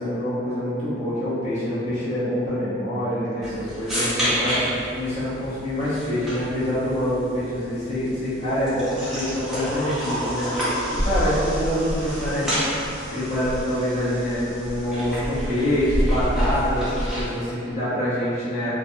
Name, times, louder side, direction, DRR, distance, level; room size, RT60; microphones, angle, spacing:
voice 1, 0.0-10.8 11.0-12.7 13.1-18.7, equal, 35° left, -11 dB, 0.8 m, -25 dB
sound 1, 3.4-17.4, equal, ahead, 0.6 m, -31 dB
sound 2, 10.9-12.6 12.8-13.0 13.2-13.7 14.2-17.2, equal, 35° right, 0.4 m, -27 dB
2.3 x 2.2 x 2.7 m, 2.5 s
head